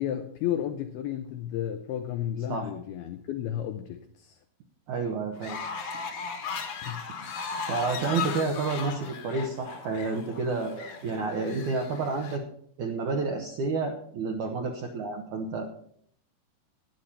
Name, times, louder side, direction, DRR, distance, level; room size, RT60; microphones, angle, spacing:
voice 1, 0.0-4.4 6.8-7.0, left 10 dB, 90° left, 7 dB, 2.2 m, -32 dB
voice 2, 4.9-5.6 7.7-12.4 12.8-15.7, right 4 dB, 85° right, 2 dB, 1.7 m, -30 dB
Fowl, 5.3-12.4, left 5 dB, 60° left, 1.8 m, -37 dB
13.5 x 10.0 x 4.2 m, 0.63 s
omnidirectional pair, 5.2 m